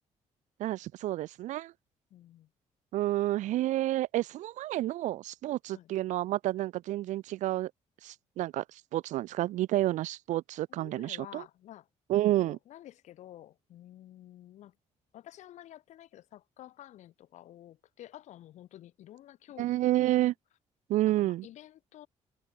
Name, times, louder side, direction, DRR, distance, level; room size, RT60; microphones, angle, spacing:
voice 1, 0.6-1.7 2.9-7.7 8.0-11.4 12.1-12.6 19.6-20.3 20.9-21.5, right 15 dB, 75° right, 0.6 m, -30 dB
voice 2, 2.1-2.5 5.7-5.9 10.7-11.9 12.3-14.7 15.1-20.2 21.1-22.1, left 13 dB, 70° left, 4.1 m, -51 dB
cardioid pair, 175°, 13 cm